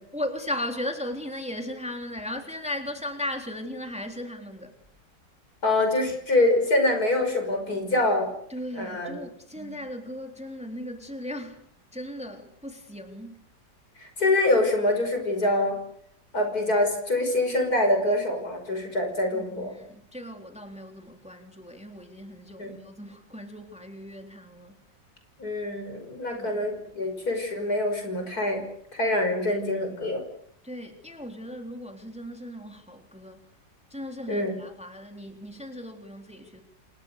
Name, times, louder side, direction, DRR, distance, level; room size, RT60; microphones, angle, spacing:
voice 1, 0.1-4.8 8.5-11.6 11.9-13.4 19.3-24.7 26.3-26.6 30.6-33.5 33.9-36.6, left 1 dB, 5° right, 3.5 m, -37 dB
voice 2, 5.6-8.3 8.7-9.2 9.6-9.7 14.0-15.8 16.3-19.7 22.6-22.8 25.4-28.6 28.9-30.2 34.3-34.6, left 2 dB, 60° left, 6.4 m, -25 dB
29.5 x 27.0 x 6.7 m
omnidirectional pair, 1.9 m